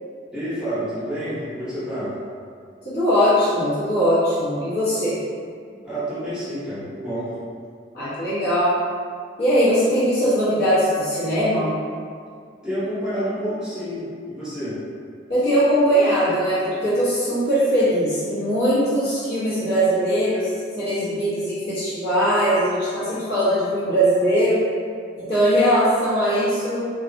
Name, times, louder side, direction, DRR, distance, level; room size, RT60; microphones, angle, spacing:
voice 1, 0.3-2.1 5.7-7.3 12.6-14.8, equal, 5° right, -13 dB, 0.8 m, -29 dB
voice 2, 2.8-5.2 7.9-8.8 9.4-11.8 15.3-20.5 20.8-24.6 25.2-26.9, equal, 55° left, -10 dB, 0.9 m, -20 dB
2.7 x 2.3 x 2.6 m, 2.2 s
head